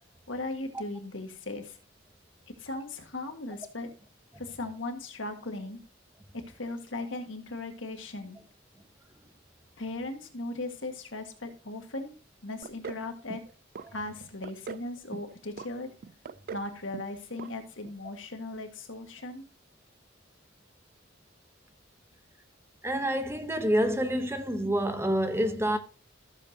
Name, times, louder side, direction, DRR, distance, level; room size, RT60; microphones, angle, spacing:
voice 1, 0.3-1.8 2.6-3.9 4.4-5.8 6.3-8.4 9.8-12.2 12.4-13.4 13.9-15.9 16.5-19.4, left 2 dB, 70° left, 1.7 m, -38 dB
sound 1, 12.6-13.0 13.3-13.9 14.2-14.9 15.1-15.7 16.0-16.7 16.9-17.1 17.4-17.5 17.8-17.9, right 6 dB, 50° right, 0.4 m, -40 dB
voice 2, 22.8-25.8, equal, 15° right, 0.7 m, -27 dB
14.5 x 7.2 x 2.8 m
head